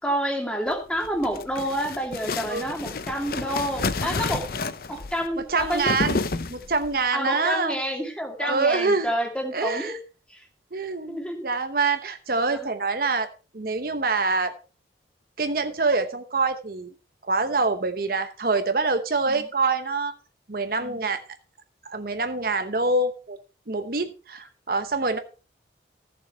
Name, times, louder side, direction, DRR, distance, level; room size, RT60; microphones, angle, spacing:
voice 1, 0.0-4.5 4.9-6.0 7.1-10.0 10.3-10.4 11.1-11.5 12.5-12.7 19.3-19.4 20.8-21.0, equal, 5° left, 2 dB, 2.4 m, -29 dB
sound 1, 0.9-7.0, left 3 dB, 55° left, 0.6 m, -30 dB
voice 2, 5.4-6.2 6.5-7.8 8.4-9.1 9.5-10.0 10.7-13.3 13.5-14.5 15.4-16.9 17.3-20.1 20.5-21.2 21.9-23.4 23.7-25.2, right 3 dB, 50° right, 8 dB, 0.9 m, -25 dB
14.5 x 7.0 x 4.4 m, 0.34 s
head